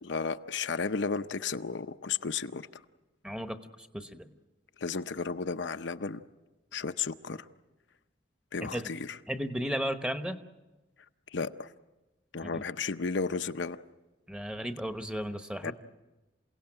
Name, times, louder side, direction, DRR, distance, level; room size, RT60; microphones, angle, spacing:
voice 1, 0.0-2.7 4.8-6.2 6.7-7.5 8.5-9.2 11.3-11.7 12.3-13.8 15.6-15.7, left 5 dB, 80° left, 9 dB, 0.7 m, -33 dB
voice 2, 3.2-4.3 8.7-8.9 9.3-10.4 12.4-12.6 14.3-15.7, equal, 5° right, 9 dB, 1.0 m, -35 dB
28.0 x 17.5 x 8.9 m, 1.1 s
head